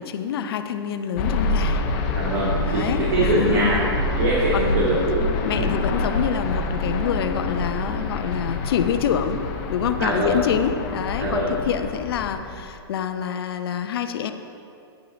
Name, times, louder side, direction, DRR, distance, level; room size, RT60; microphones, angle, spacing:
voice 1, 0.0-1.8 2.7-3.9 4.5-4.9 5.4-9.4 9.7-14.3, left 8 dB, 60° left, 8 dB, 0.8 m, -26 dB
sound 1, 1.2-12.7, left 2 dB, 40° left, 1.2 m, -26 dB
voice 2, 2.1-3.8 4.1-5.3 5.5-5.7 10.0-10.4 11.2-11.5, right 2 dB, 60° right, -6 dB, 2.4 m, -23 dB
10.5 x 10.5 x 3.9 m, 2.5 s
hypercardioid pair, 115°, 14 cm